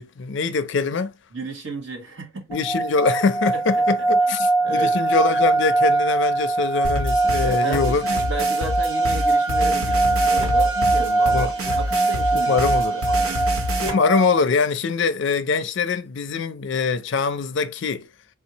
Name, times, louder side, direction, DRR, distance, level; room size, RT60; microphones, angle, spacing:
voice 1, 0.0-1.1 2.5-8.0 11.3-11.5 12.5-13.0 13.8-18.1, left 4 dB, 55° left, 0.4 m, -23 dB
voice 2, 1.3-2.6 3.5-3.8 4.6-5.0 7.4-13.3 13.8-14.0, right 3 dB, 60° right, 1.1 m, -33 dB
sound 1, 2.5-14.4, right 2 dB, 10° right, 0.5 m, -22 dB
sound 2, 6.8-13.9, equal, 80° right, 0.8 m, -27 dB
sound 3, 7.9-8.9 9.9-11.1 11.6-12.5 13.3-14.0, right 1 dB, 25° right, 0.9 m, -39 dB
3.5 x 2.6 x 2.8 m
head